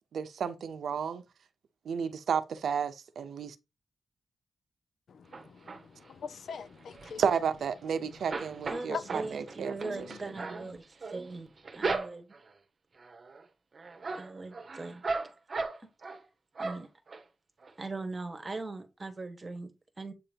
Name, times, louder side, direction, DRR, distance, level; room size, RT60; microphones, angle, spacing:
voice 1, 0.1-1.2 1.8-3.6 7.2-10.1, right 7 dB, 80° right, 0.7 m, -32 dB
voice 2, 5.1-7.2 8.0-8.1 8.9-9.0 9.8-10.1, left 6 dB, 75° left, 0.5 m, -42 dB
sound 1, 5.3-6.1 6.5-7.9 8.1-12.5 13.0-13.4 13.7-16.2 16.6-17.2 17.6-17.7 18.0-18.1, right 3 dB, 40° right, 0.9 m, -37 dB
voice 3, 8.7-11.5 11.7-12.3 14.2-15.0 16.1-16.2 16.6-16.9 17.8-19.7 20.0-20.1, right 3 dB, 25° right, 1.2 m, -40 dB
8.1 x 2.9 x 5.1 m
wide cardioid pair, 165°, 0 cm